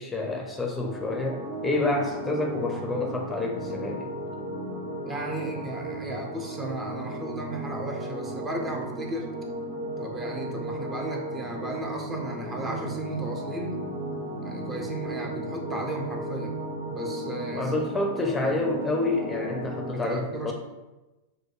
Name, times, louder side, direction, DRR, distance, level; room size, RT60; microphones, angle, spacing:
voice 1, 0.0-4.1 17.5-20.5, left 2 dB, 15° left, 1 dB, 0.6 m, -28 dB
sound 1, 0.6-20.0, right 1 dB, 85° right, 0.8 m, -35 dB
voice 2, 5.0-9.3 10.0-13.8 14.4-16.5 16.9-17.7 19.9-20.5, right 1 dB, 20° right, 1 dB, 0.8 m, -35 dB
6.2 x 2.2 x 3.1 m, 1.1 s
hypercardioid pair, 100°, 0 cm